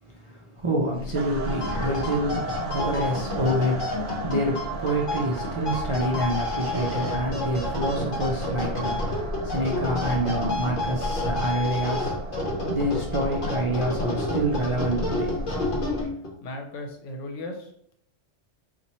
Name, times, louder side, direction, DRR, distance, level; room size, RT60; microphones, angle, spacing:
voice 1, 0.0-12.4 12.7-15.4, right 1 dB, 55° right, -3 dB, 0.3 m, -27 dB
sound 1, 0.9-16.1, equal, 10° left, 0.6 m, -36 dB
sound 2, 1.1-15.9, right 6 dB, 75° right, 0.9 m, -38 dB
sound 3, 1.4-16.3, left 2 dB, 50° left, 0.8 m, -30 dB
voice 2, 16.4-17.7, left 2 dB, 75° left, 3 dB, 1.0 m, -36 dB
4.2 x 2.5 x 2.9 m, 0.68 s
omnidirectional pair, 1.3 m